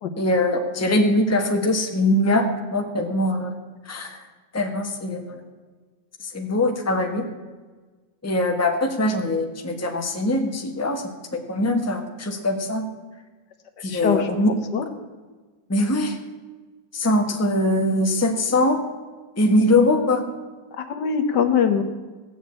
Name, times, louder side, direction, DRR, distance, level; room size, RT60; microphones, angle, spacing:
voice 1, 0.2-2.5 2.7-3.5 3.8-4.2 4.5-5.4 6.2-7.3 8.2-12.9 13.8-14.5 15.7-16.2 16.9-18.8 19.4-20.2, left 1 dB, 10° left, 3 dB, 1.2 m, -22 dB
voice 2, 13.9-14.9 20.8-21.8, left 7 dB, 65° left, 8 dB, 1.6 m, -23 dB
17.0 x 7.0 x 8.6 m, 1.3 s
omnidirectional pair, 2.0 m